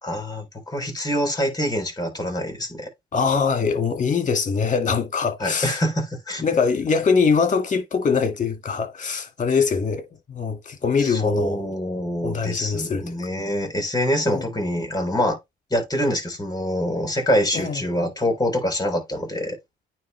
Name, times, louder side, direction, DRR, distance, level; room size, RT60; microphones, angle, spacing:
voice 1, 0.0-2.9 5.4-6.4 11.0-15.4 15.7-19.6, equal, 20° left, 3.7 m, -25 dB
voice 2, 3.1-5.8 6.4-10.0 10.3-11.6 12.2-13.0 14.3-14.4 17.5-17.8, left 5 dB, 40° left, 1.9 m, -22 dB
9.3 x 3.2 x 3.2 m
cardioid pair, 90°, 20 cm